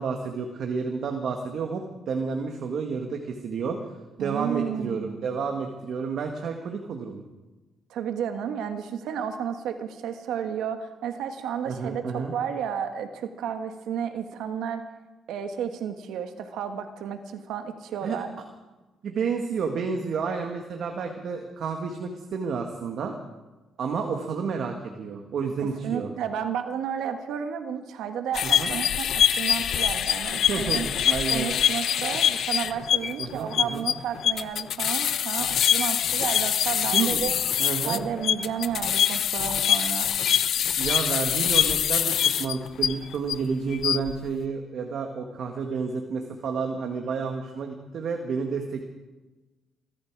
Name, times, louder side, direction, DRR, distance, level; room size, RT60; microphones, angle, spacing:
voice 1, 0.0-3.9 4.2-7.2 11.7-12.3 18.0-18.4 19.0-23.1 23.8-26.1 28.4-28.7 30.5-31.5 33.2-33.9 36.9-37.2 37.6-38.0 40.8-48.9, right 5 dB, 65° right, 4 dB, 1.8 m, -30 dB
voice 2, 4.2-5.3 7.9-14.8 15.3-18.3 25.8-30.9 31.3-37.3 37.8-40.1, right 8 dB, 85° right, 7 dB, 1.6 m, -32 dB
sound 1, 28.3-43.3 43.7-44.1, left 9 dB, 70° left, 0.7 m, -24 dB
22.0 x 14.0 x 4.8 m, 1.1 s
cardioid pair, 90°, 0 cm